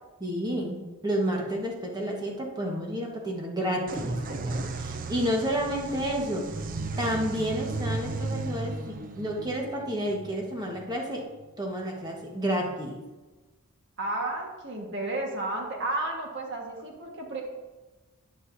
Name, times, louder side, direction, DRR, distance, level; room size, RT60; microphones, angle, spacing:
voice 1, 0.2-6.7 7.0-11.3 11.6-13.0, equal, 20° right, -1 dB, 1.3 m, -30 dB
sound 1, 3.9-11.4, right 3 dB, 40° right, 0.5 m, -35 dB
voice 2, 14.0-17.4, right 2 dB, 55° right, 0 dB, 1.5 m, -32 dB
9.7 x 9.5 x 2.7 m, 1.2 s
head